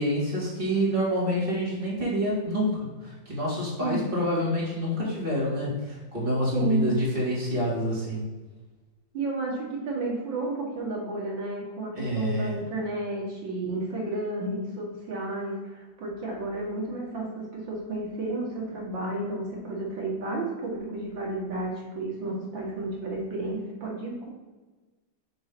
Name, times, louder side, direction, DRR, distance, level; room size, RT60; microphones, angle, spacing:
voice 1, 0.0-8.2 12.0-12.6, equal, 30° right, -6 dB, 2.0 m, -27 dB
voice 2, 6.5-7.0 9.1-17.3 17.7-24.3, right 2 dB, 80° right, -3 dB, 2.4 m, -32 dB
6.6 x 3.2 x 5.3 m, 1.2 s
omnidirectional pair, 2.0 m